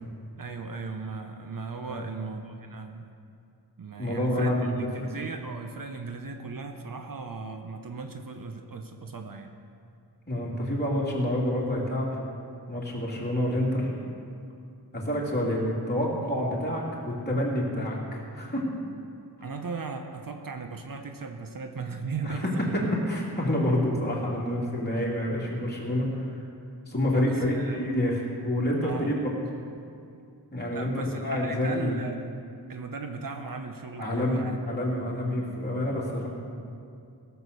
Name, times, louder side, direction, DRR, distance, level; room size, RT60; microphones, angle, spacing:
voice 1, 0.4-3.1 3.8-4.6 4.9-9.5 14.0-14.1 19.4-22.8 27.1-27.8 28.8-29.1 30.7-32.3 32.7-34.6 34.9-35.5, right 4 dB, 55° right, 5 dB, 0.9 m, -37 dB
voice 2, 4.0-5.1 10.3-12.1 12.7-13.9 14.9-18.6 22.2-26.4 26.9-29.2 30.5-32.0 34.0-36.3, left 1 dB, 25° left, -4 dB, 2.9 m, -28 dB
17.0 x 6.8 x 6.7 m, 2.5 s
wide cardioid pair, 105°, 41 cm